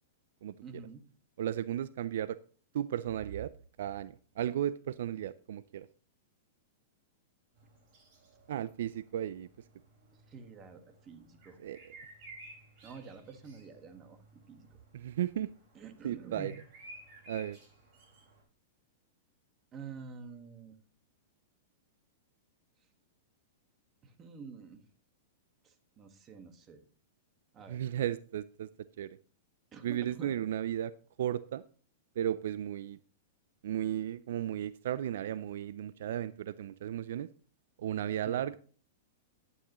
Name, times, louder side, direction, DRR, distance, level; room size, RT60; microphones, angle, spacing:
voice 1, 0.6-1.0 10.1-11.6 12.8-14.7 15.7-16.5 19.7-20.8 24.0-24.8 25.6-26.8 27.5-27.8 29.7-30.4 38.2-38.5, right 5 dB, 25° right, 8 dB, 1.5 m, -48 dB
voice 2, 1.4-2.4 2.7-3.5 3.8-5.9 8.5-9.5 11.6-11.8 14.9-15.5 16.0-16.5 17.3-17.6 27.7-28.7 29.0-29.2 29.8-30.9 31.2-31.6 32.2-33.0 33.6-37.3 37.8-38.6, right 11 dB, 70° right, 17 dB, 0.4 m, -34 dB
sound 1, 7.6-18.4, right 1 dB, 45° right, 5.0 m, -56 dB
11.5 x 9.6 x 3.0 m, 0.41 s
hypercardioid pair, 135°, 0 cm